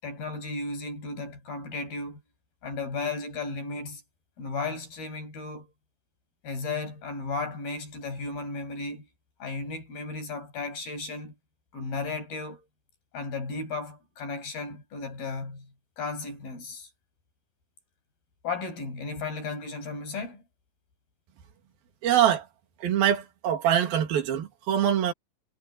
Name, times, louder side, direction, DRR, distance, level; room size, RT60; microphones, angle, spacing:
voice 1, 0.0-2.2 2.6-4.0 4.4-5.7 6.4-9.1 9.4-11.3 11.7-12.7 13.1-15.7 16.0-16.9 18.4-20.4, left 3 dB, 90° left, 8.6 m, -34 dB
voice 2, 22.0-22.5 22.8-25.1, right 10 dB, 85° right, 4.0 m, -24 dB
omnidirectional pair, 4.1 m